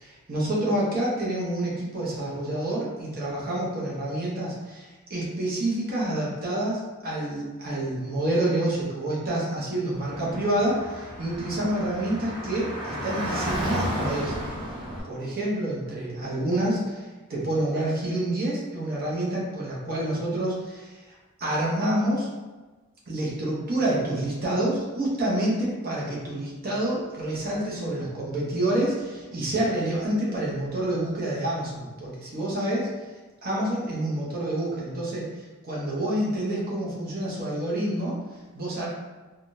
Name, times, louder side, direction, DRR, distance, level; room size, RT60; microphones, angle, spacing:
voice 1, 0.0-14.4 15.1-21.0 21.4-22.3 23.1-32.9 33.4-38.2 38.5-38.9, right 1 dB, 40° right, -5 dB, 0.9 m, -28 dB
Car / Traffic noise roadway noise, 9.9-15.0, equal, 20° right, 1.1 m, -32 dB
3.6 x 2.3 x 2.6 m, 1.2 s
head